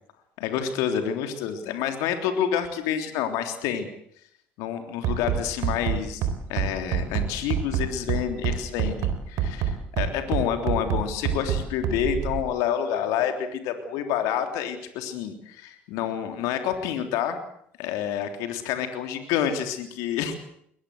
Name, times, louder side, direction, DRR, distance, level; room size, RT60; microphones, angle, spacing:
voice 1, 0.4-3.9 4.6-17.4 17.8-20.4, left 9 dB, 70° left, 7 dB, 3.4 m, -28 dB
Bass drum, 5.0-12.4, right 8 dB, 65° right, 4.1 m, -26 dB
22.5 x 20.0 x 8.0 m, 0.69 s
hypercardioid pair, 60°, 6 cm